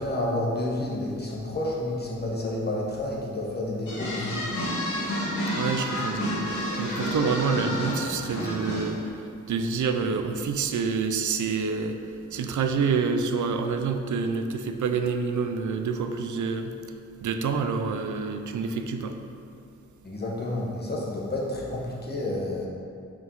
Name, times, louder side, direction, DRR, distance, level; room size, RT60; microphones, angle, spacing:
voice 1, 0.0-4.7 20.0-22.7, left 1 dB, 35° left, -4 dB, 1.1 m, -30 dB
sound 1, 3.9-9.1, equal, 75° left, 1.3 m, -30 dB
voice 2, 5.5-9.0 9.5-12.0 12.3-16.7 17.2-19.2, right 5 dB, 75° right, 6 dB, 0.5 m, -27 dB
5.6 x 4.7 x 3.9 m, 2.4 s
wide cardioid pair, 105°, 30 cm